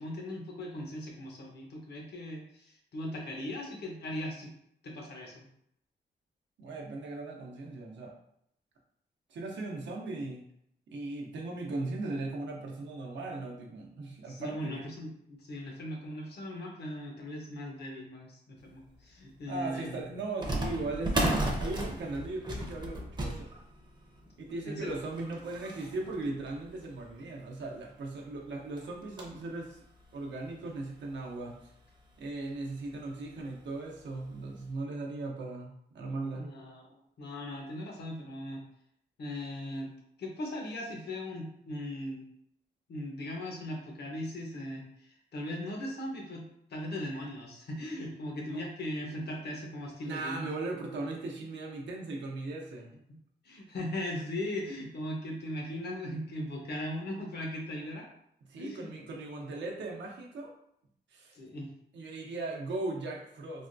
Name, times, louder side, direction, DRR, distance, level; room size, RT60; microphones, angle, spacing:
voice 1, 0.0-4.5 4.8-5.5 14.3-20.1 24.6-24.9 36.3-38.6 39.2-39.9 40.2-42.2 42.9-46.4 46.7-50.5 53.4-58.1 58.6-58.9 61.3-61.7, left 1 dB, 65° left, 0 dB, 0.8 m, -39 dB
voice 2, 6.6-8.1 9.3-10.4 10.9-14.9 19.5-23.5 24.4-29.8 30.1-31.5 32.2-36.5 50.0-52.9 58.5-60.5 61.1-61.3 61.9-63.7, right 2 dB, 90° right, -1 dB, 0.7 m, -38 dB
sound 1, 19.0-19.1 20.4-27.3 27.9-28.0 28.2-28.4 28.8-29.5 30.0-30.1 30.9-31.0 31.4-31.5 32.9-33.2 33.6-33.7 34.3-34.5, right 1 dB, 25° right, 0.5 m, -35 dB
3.3 x 2.2 x 2.6 m, 0.74 s
wide cardioid pair, 105°, 18 cm